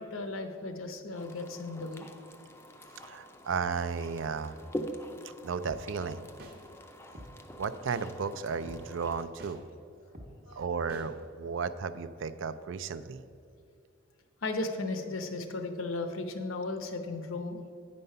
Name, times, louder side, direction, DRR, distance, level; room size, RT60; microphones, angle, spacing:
voice 1, 0.0-2.1 10.4-10.6 14.4-17.6, left 2 dB, 80° left, 7 dB, 0.8 m, -35 dB
sound 1, 1.1-9.2, equal, 10° left, 0.4 m, -45 dB
voice 2, 3.0-4.6 5.4-6.3 7.6-9.6 10.6-13.2, right 5 dB, 65° right, 13 dB, 0.4 m, -34 dB
sound 2, 5.6-5.8 6.4-6.5 7.1-7.3 7.9-8.0 8.6-8.8 9.4-9.5 10.1-10.3 10.9-11.0, equal, 45° right, 1.0 m, -46 dB
9.2 x 5.4 x 5.5 m, 2.5 s
head